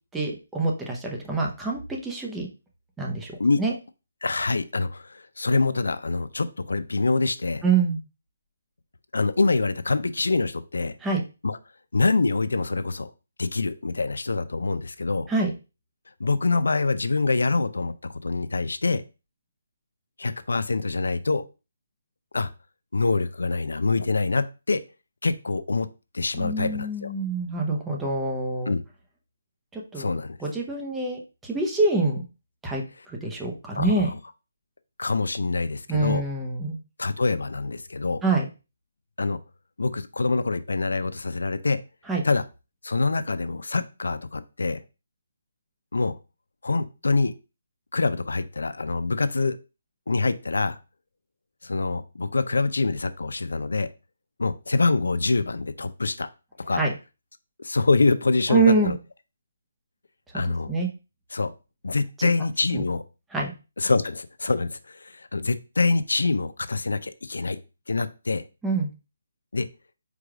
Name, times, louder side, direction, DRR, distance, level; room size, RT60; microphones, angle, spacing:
voice 1, 0.1-2.5 3.0-3.3 3.6-3.7 7.6-8.0 11.0-11.2 15.3-15.5 26.3-28.7 29.7-30.1 30.4-32.2 32.6-32.8 33.2-34.1 35.9-36.8 38.2-38.5 42.1-42.2 56.7-56.9 58.5-58.9 60.7-60.9 62.2-62.3 62.7-62.8 63.3-63.5 68.6-68.9, right 3 dB, 5° right, -1 dB, 0.6 m, -25 dB
voice 2, 4.2-7.6 9.1-10.9 11.4-11.6 11.9-13.1 13.4-15.3 16.2-19.0 20.2-21.5 22.3-22.5 22.9-24.8 25.2-27.1 28.7-28.8 30.0-30.4 33.8-34.2 35.0-36.2 37.0-38.2 39.2-39.4 39.8-41.8 42.2-42.5 42.8-44.8 45.9-46.2 46.6-47.3 47.9-49.6 50.1-50.8 51.6-53.9 54.4-56.3 56.6-56.8 57.6-59.0 60.3-60.7 61.3-61.5 61.8-63.0 63.8-67.6 67.9-68.4 69.5-69.7, left 3 dB, 90° left, 12 dB, 0.4 m, -25 dB
4.7 x 2.3 x 4.8 m, 0.30 s
hypercardioid pair, 170°, 0 cm